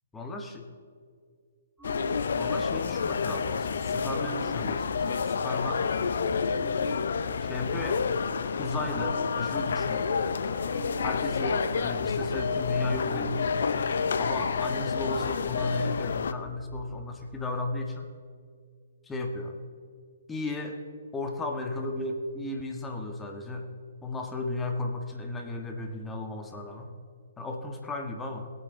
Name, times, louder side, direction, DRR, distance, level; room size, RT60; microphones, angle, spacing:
voice 1, 0.1-0.7 2.4-5.8 7.4-8.0 8.6-10.1 11.0-13.4 14.2-18.1 19.0-19.6 20.3-20.8 21.1-23.7 24.0-26.9 27.4-28.5, left 2 dB, 10° left, 3 dB, 1.5 m, -34 dB
sound 1, 1.8-16.3, left 5 dB, 60° left, 0.6 m, -29 dB
sound 2, 1.8-9.2 9.8-9.9 10.2-17.5, right 1 dB, 5° right, 2.6 m, -45 dB
19.0 x 9.0 x 3.9 m, 2.1 s
figure-of-eight pair, 125°, 0 cm